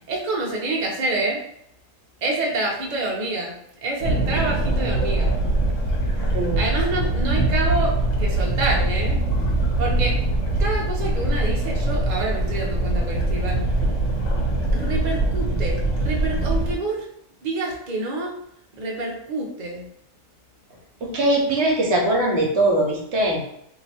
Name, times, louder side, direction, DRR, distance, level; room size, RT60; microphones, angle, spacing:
voice 1, 0.1-1.4 2.2-5.4 6.6-9.2 9.8-10.2 10.6-13.7 14.7-17.1 17.4-18.3 18.7-19.9, right 2 dB, 40° right, -2 dB, 0.7 m, -27 dB
sound 1, 4.0-16.7, right 2 dB, 70° left, 1.2 m, -22 dB
voice 2, 6.3-6.7 21.0-23.4, right 1 dB, 55° right, -1 dB, 1.0 m, -21 dB
2.8 x 2.7 x 4.2 m, 0.75 s
omnidirectional pair, 1.4 m